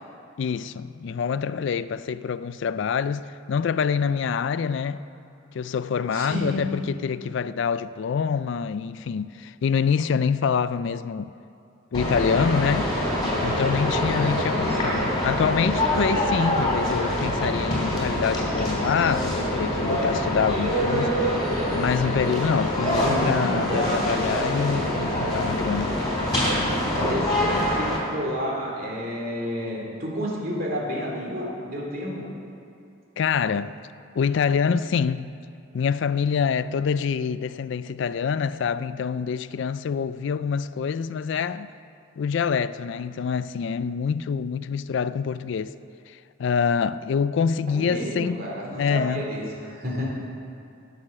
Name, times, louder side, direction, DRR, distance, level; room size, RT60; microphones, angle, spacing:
voice 1, 0.4-5.0 5.5-11.3 11.9-12.9 13.4-21.2 21.7-25.9 33.2-33.8 34.2-35.3 35.7-41.7 42.2-45.8 46.1-48.5 48.8-49.3, left 6 dB, 60° left, 0.3 m, -26 dB
voice 2, 6.1-6.7 23.0-23.9 26.9-32.3 47.7-50.1, equal, 45° right, 2.7 m, -30 dB
sound 1, 11.9-28.0, left 1 dB, 20° left, 3.2 m, -25 dB
17.0 x 6.5 x 6.5 m
head